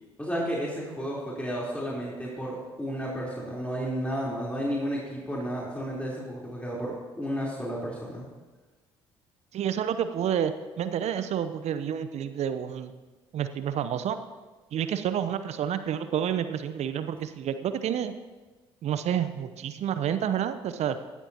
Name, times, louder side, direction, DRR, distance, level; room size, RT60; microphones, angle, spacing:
voice 1, 0.2-8.3, equal, 10° left, -5 dB, 3.9 m, -32 dB
voice 2, 9.5-12.9 13.3-14.2 14.7-18.1 18.8-21.0, right 9 dB, 55° right, 11 dB, 0.8 m, -29 dB
18.0 x 13.0 x 2.9 m, 1.2 s
hypercardioid pair, 50°, 13 cm